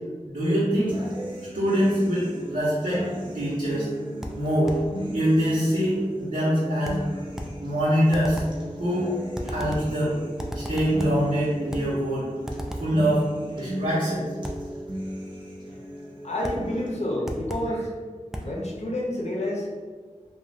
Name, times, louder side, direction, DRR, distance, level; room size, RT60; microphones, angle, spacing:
voice 1, 0.3-1.0 1.5-3.1 3.3-3.9 4.3-4.8 5.1-7.2 7.6-8.4 8.8-9.1 9.4-10.2 10.5-12.3 12.8-14.3 17.6-17.7 18.3-18.6, equal, 80° right, -13 dB, 0.9 m, -24 dB
sound 1, 0.9-16.9, equal, 35° right, 0.7 m, -36 dB
sound 2, 4.2-4.9 6.8-7.6 8.1-8.6 9.3-10.0 10.4-11.3 11.7-12.0 12.5-13.0 14.4-14.7 16.4-16.7 17.3-17.8 18.3-18.6, equal, 5° right, 0.3 m, -35 dB
voice 2, 16.2-17.9 18.4-19.7, left 1 dB, 55° left, -3 dB, 0.6 m, -29 dB
2.5 x 2.3 x 3.1 m, 1.5 s
wide cardioid pair, 50°, 14 cm